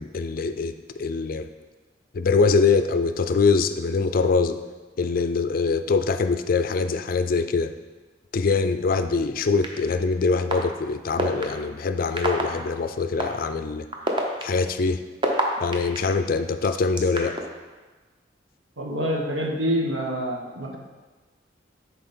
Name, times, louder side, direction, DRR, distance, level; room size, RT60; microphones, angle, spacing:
voice 1, 0.0-1.5 2.1-4.6 5.0-7.7 8.3-13.9 14.4-15.0 15.6-17.4, left 4 dB, 50° left, 10 dB, 0.4 m, -23 dB
sound 1, 9.6-9.7 10.5-10.6 11.2-11.4 12.2-12.4 13.2-13.3 13.9-16.0 16.6-17.4, right 2 dB, 25° right, 0.8 m, -25 dB
voice 2, 18.8-20.8, equal, 85° right, -1 dB, 1.4 m, -27 dB
10.5 x 4.2 x 4.3 m, 1.3 s
head